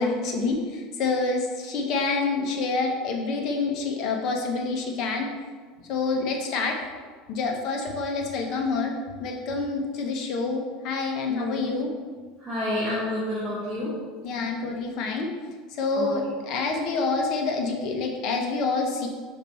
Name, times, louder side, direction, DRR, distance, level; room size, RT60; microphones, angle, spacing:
voice 1, 0.0-5.3 5.8-6.8 7.3-11.9 14.2-15.3 15.7-19.1, left 3 dB, 40° left, 1 dB, 0.9 m, -27 dB
voice 2, 11.3-11.6 12.4-14.0 15.9-16.1, left 1 dB, 15° right, -8 dB, 1.2 m, -29 dB
5.2 x 4.3 x 5.4 m, 1.5 s
supercardioid pair, 175°, 0 cm